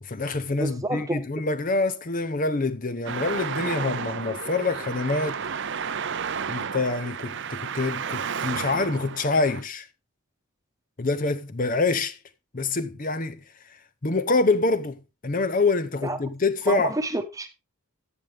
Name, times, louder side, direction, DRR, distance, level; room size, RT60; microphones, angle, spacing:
voice 1, 0.0-5.4 6.5-9.9 11.0-12.2 12.5-17.0, left 3 dB, 35° left, 0.7 m, -26 dB
voice 2, 0.6-1.2 16.0-16.2 16.7-17.5, right 1 dB, 15° right, 1.1 m, -28 dB
Traffic noise roadway noise, 3.1-9.6, right 6 dB, 55° right, 0.6 m, -32 dB
14.0 x 7.9 x 3.4 m
head